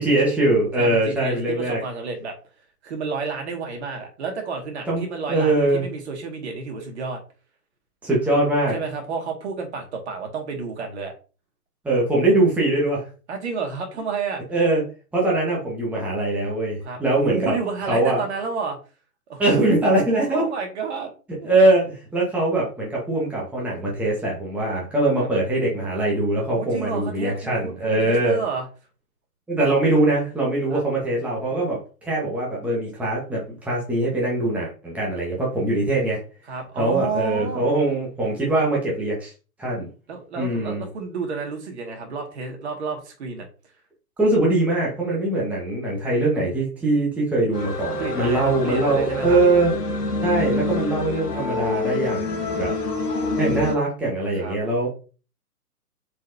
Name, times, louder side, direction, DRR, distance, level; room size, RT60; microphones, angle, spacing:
voice 1, 0.0-1.8 4.9-5.0 5.3-5.8 8.0-8.7 11.8-13.0 14.5-14.8 15.1-17.5 17.9-18.2 19.4-20.4 21.4-28.4 29.5-36.2 36.8-39.3 39.6-39.9 40.4-40.8 44.2-49.7 50.2-52.7 53.3-54.9, right 2 dB, 5° right, -5 dB, 1.4 m, -22 dB
voice 2, 0.8-2.4 2.8-7.2 8.3-8.4 8.7-11.1 13.3-14.4 16.8-17.0 17.3-18.8 19.3-19.4 20.3-21.1 21.4-21.7 25.1-25.3 26.5-28.7 30.7-30.8 36.5-37.7 40.1-43.5 48.0-49.4 52.6-52.8 54.4-54.6, right 4 dB, 45° right, 3 dB, 2.2 m, -30 dB
sound 1, 47.5-53.7, left 2 dB, 90° left, 1.7 m, -26 dB
7.3 x 4.7 x 2.8 m, 0.35 s
figure-of-eight pair, 135°, 46 cm